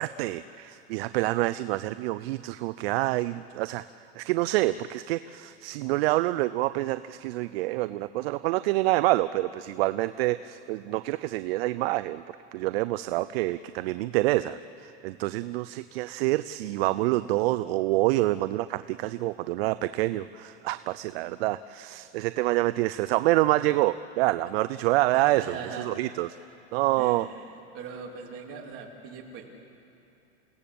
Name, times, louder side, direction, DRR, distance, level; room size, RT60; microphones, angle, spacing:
voice 1, 0.0-3.8 4.2-12.2 12.5-26.3 26.7-27.3, right 17 dB, 60° right, 13 dB, 0.6 m, -27 dB
voice 2, 25.1-25.9 27.0-27.4 27.7-29.5, right 6 dB, 40° right, 0 dB, 3.2 m, -40 dB
29.5 x 17.5 x 7.0 m, 2.7 s
supercardioid pair, 140°, 34 cm